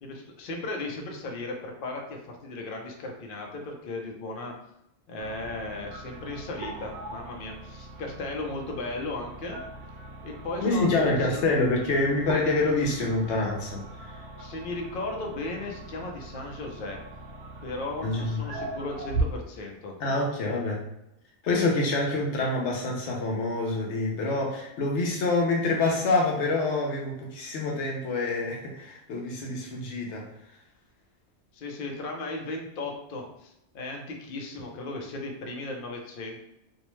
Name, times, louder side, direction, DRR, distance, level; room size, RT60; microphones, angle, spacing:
voice 1, 0.0-4.5 5.1-9.6 10.2-11.4 14.4-17.0 17.6-20.0 31.5-36.4, left 2 dB, 55° left, 1 dB, 0.7 m, -36 dB
sound 1, 5.2-19.3, right 2 dB, 90° right, 0.9 m, -39 dB
voice 2, 10.6-14.2 18.0-18.4 20.0-20.8 21.4-30.3, left 2 dB, 80° left, -1 dB, 0.9 m, -26 dB
2.6 x 2.1 x 3.0 m, 0.83 s
omnidirectional pair, 1.2 m